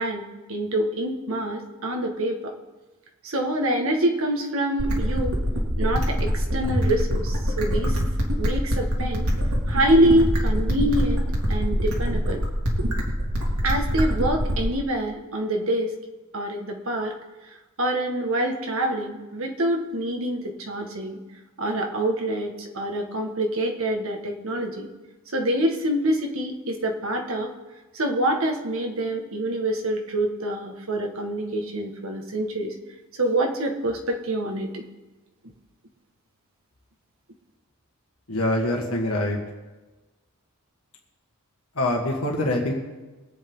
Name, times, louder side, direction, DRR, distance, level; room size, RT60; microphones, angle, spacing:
voice 1, 0.0-2.5 3.2-5.4 5.8-8.0 8.4-9.3 9.7-11.2 11.5-12.4 13.6-15.9 16.3-17.1 17.8-21.2 21.6-24.9 25.3-27.5 27.9-32.7 33.1-34.8, right 1 dB, 65° right, 1 dB, 1.8 m, -26 dB
sound 1, 4.8-14.8, equal, 90° right, 2.6 m, -24 dB
voice 2, 38.3-39.4 41.8-42.7, left 1 dB, 75° left, 0 dB, 2.0 m, -24 dB
23.0 x 8.3 x 3.8 m, 1.2 s
head